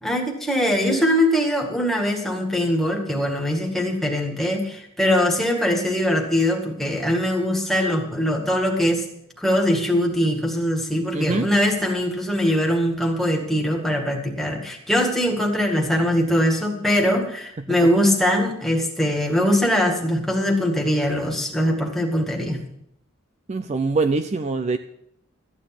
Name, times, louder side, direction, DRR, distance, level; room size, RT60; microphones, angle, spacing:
voice 1, 0.0-9.0 9.4-22.6, equal, ahead, 1 dB, 1.9 m, -22 dB
voice 2, 11.1-11.5 23.5-24.8, right 3 dB, 30° right, 10 dB, 0.4 m, -23 dB
13.5 x 9.7 x 5.9 m, 0.77 s
head